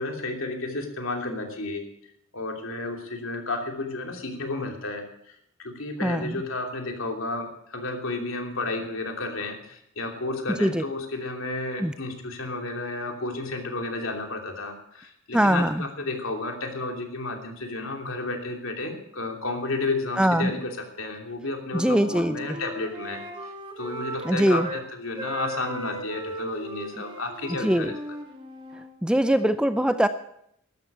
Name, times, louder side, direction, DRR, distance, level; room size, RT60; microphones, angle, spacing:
voice 1, 0.0-1.8 2.3-27.9, left 2 dB, 65° left, 3 dB, 3.0 m, -32 dB
voice 2, 6.0-6.4 10.6-10.8 11.8-11.9 15.3-15.8 20.2-20.5 21.7-22.6 24.2-24.7 27.6-27.9 29.0-30.1, equal, 5° right, 11 dB, 0.5 m, -22 dB
Wind instrument woodwind instrument, 21.8-24.8 25.2-28.9, equal, 25° right, 2.6 m, -37 dB
13.0 x 12.0 x 8.0 m, 0.73 s
head